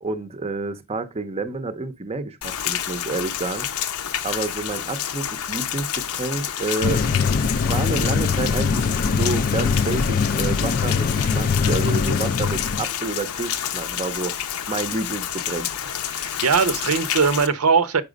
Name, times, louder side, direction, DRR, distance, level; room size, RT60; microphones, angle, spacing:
voice 1, 0.0-3.7 4.2-7.0 7.6-14.3 14.7-15.9, right 3 dB, 30° right, 0.6 m, -29 dB
Rain, 2.4-17.5, left 9 dB, 85° left, 0.7 m, -29 dB
sound 1, 6.8-12.8, left 5 dB, 40° left, 0.4 m, -22 dB
voice 2, 16.1-18.0, right 5 dB, 90° right, 0.8 m, -20 dB
5.8 x 4.9 x 5.0 m
head